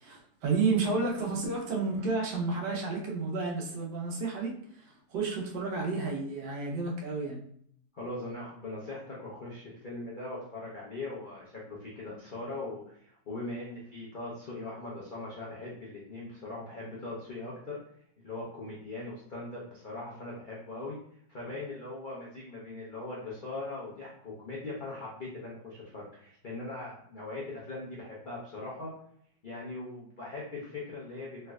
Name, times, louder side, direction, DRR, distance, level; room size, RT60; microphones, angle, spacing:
voice 1, 0.0-4.5 5.1-7.4, right 4 dB, 75° right, -1 dB, 1.3 m, -31 dB
voice 2, 7.9-17.8 18.2-21.0 21.3-28.9 29.4-31.5, left 2 dB, 65° left, -6 dB, 0.5 m, -40 dB
3.3 x 3.1 x 2.3 m, 0.66 s
omnidirectional pair, 1.9 m